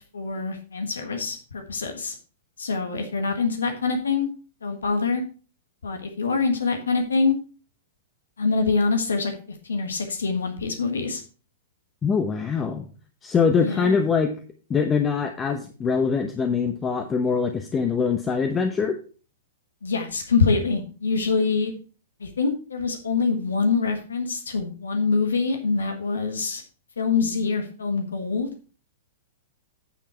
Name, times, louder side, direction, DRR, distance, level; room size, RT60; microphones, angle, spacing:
voice 1, 0.1-2.1 2.6-4.3 4.6-5.2 5.8-7.4 8.4-11.2 13.6-14.0 19.8-21.7 22.2-26.6 27.0-28.5, left 4 dB, 80° left, 5 dB, 1.4 m, -25 dB
voice 2, 12.0-12.9 13.2-14.3 14.7-19.0, left 5 dB, 20° left, 6 dB, 0.9 m, -23 dB
9.2 x 6.9 x 4.4 m, 0.37 s
figure-of-eight pair, 110°, 0 cm